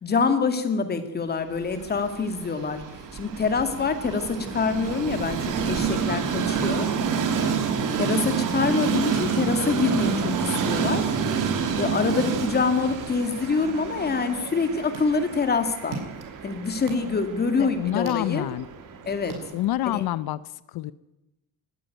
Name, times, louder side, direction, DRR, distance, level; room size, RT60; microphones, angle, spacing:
voice 1, 0.0-2.8 3.1-6.9 8.0-11.2 11.8-16.0 16.4-18.5 19.1-19.4 19.9-20.0, left 4 dB, 25° left, 8 dB, 2.2 m, -25 dB
Train, 1.6-19.7, right 6 dB, 55° right, 3.0 m, -29 dB
sound 1, 14.4-20.1, right 3 dB, 80° right, 7.2 m, -44 dB
voice 2, 17.6-18.7 19.5-20.4 20.7-20.9, left 14 dB, 75° left, 17 dB, 0.8 m, -27 dB
20.0 x 14.5 x 9.2 m, 0.96 s
cardioid pair, 170°, 38 cm